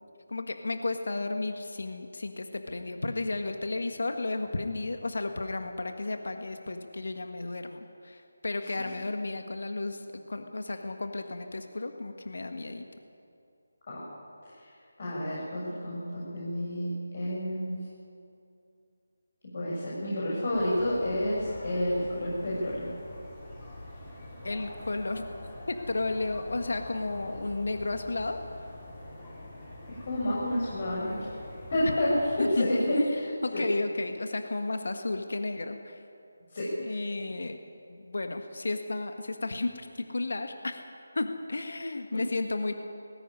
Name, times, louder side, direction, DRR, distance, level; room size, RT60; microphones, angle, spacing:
voice 1, 0.3-12.9 24.4-25.3 25.7-28.4 32.4-33.1 33.4-36.0 36.8-37.6 37.9-40.8 41.1-42.7, left 2 dB, 65° left, 6 dB, 1.6 m, -33 dB
voice 2, 15.0-17.8 19.5-22.9 30.0-31.2 31.7-32.1 32.5-33.6 36.5-37.0, left 1 dB, 45° left, -6 dB, 6.6 m, -30 dB
sound 1, 20.5-32.4, left 1 dB, 20° left, 5.7 m, -45 dB
19.5 x 16.0 x 9.8 m, 2.6 s
figure-of-eight pair, 160°, 0 cm